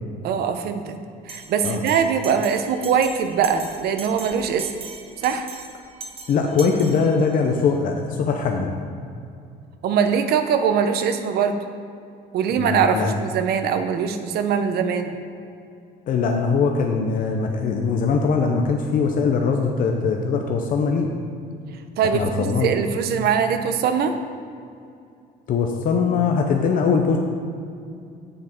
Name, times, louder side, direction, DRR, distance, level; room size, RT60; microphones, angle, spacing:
voice 1, 0.2-0.9 1.3-4.7 5.2-5.5 9.8-11.6 12.3-15.1 22.0-24.1, right 7 dB, 70° right, 8 dB, 0.7 m, -22 dB
Bell, 1.3-7.5, right 4 dB, 35° right, 0.8 m, -39 dB
voice 2, 6.3-8.7 12.6-13.1 16.1-21.1 22.1-22.7 25.5-27.2, left 5 dB, 55° left, 2 dB, 0.7 m, -21 dB
7.6 x 6.7 x 4.4 m, 2.4 s
cardioid pair, 110°, 17 cm